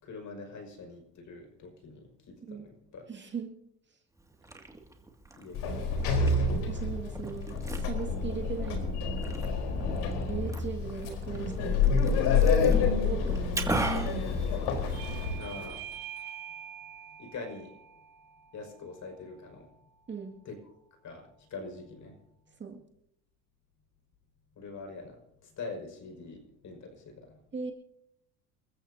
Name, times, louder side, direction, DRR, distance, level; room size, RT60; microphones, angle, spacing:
voice 1, 0.0-3.1 5.4-5.9 15.3-15.9 17.2-17.7 18.5-19.7 20.4-20.6 21.0-21.2 21.5-22.2 24.6-25.2 25.4-27.4, left 3 dB, 40° left, 4 dB, 5.7 m, -44 dB
voice 2, 3.1-3.5 6.7-9.4 10.3-12.2 12.7-14.3 20.1-20.3 22.6-22.8 27.5-27.7, right 5 dB, 25° right, 3 dB, 2.2 m, -39 dB
Liquid, 4.2-15.2, right 2 dB, 5° right, 2.2 m, -40 dB
Sliding door, 5.5-15.7, left 4 dB, 65° left, 4.2 m, -28 dB
Bell / Doorbell, 14.9-20.1, right 9 dB, 55° right, 2.5 m, -46 dB
29.5 x 14.5 x 2.8 m, 0.72 s
supercardioid pair, 110°, 43 cm